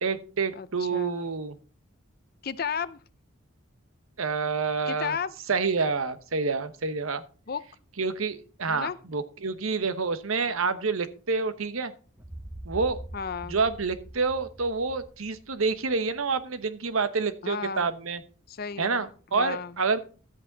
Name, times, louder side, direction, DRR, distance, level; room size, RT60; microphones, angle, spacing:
voice 1, 0.0-1.5 4.2-5.1 5.5-7.2 8.0-11.9 12.6-13.0 13.5-18.2 18.8-20.1, right 4 dB, 75° right, 1.0 m, -28 dB
voice 2, 0.6-1.3 2.4-3.0 4.9-5.3 7.5-7.6 8.7-9.0 10.5-10.8 13.1-13.6 17.4-17.9 18.5-19.0 19.3-19.8, left 6 dB, 45° left, 0.5 m, -34 dB
sound 1, 12.2-16.0, right 1 dB, 10° right, 1.2 m, -43 dB
13.0 x 8.5 x 3.9 m
head